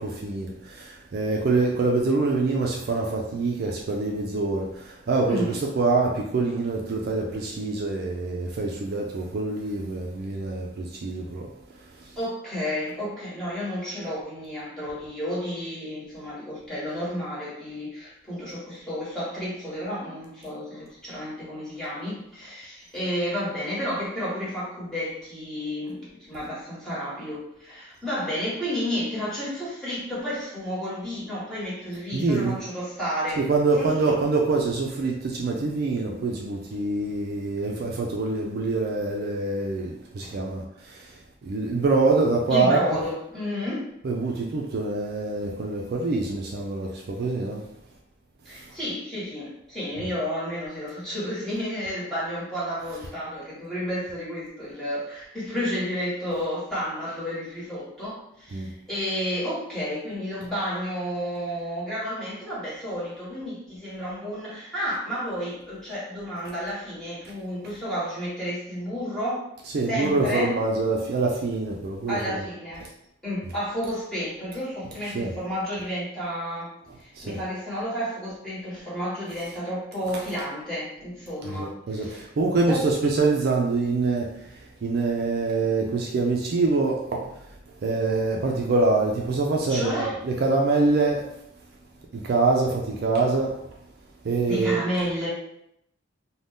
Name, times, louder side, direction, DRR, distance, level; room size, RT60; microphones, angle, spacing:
voice 1, 0.0-11.5 12.0-12.1 32.1-32.6 33.4-42.8 44.0-47.6 48.5-48.7 50.0-50.1 58.5-58.7 69.7-72.4 72.8-72.9 75.1-75.3 77.1-77.4 80.1-80.2 81.4-87.4 87.8-91.3 92.1-93.6 94.2-94.8, right 3 dB, 50° right, 0 dB, 0.4 m, -25 dB
voice 2, 5.3-5.6 12.2-26.0 26.3-33.4 33.8-34.1 40.2-40.3 42.5-43.9 48.4-69.4 69.9-70.5 72.1-72.9 73.2-82.2 82.7-82.9 89.7-90.2 94.5-95.3, equal, 5° left, -10 dB, 1.2 m, -31 dB
2.6 x 2.2 x 3.4 m, 0.77 s
head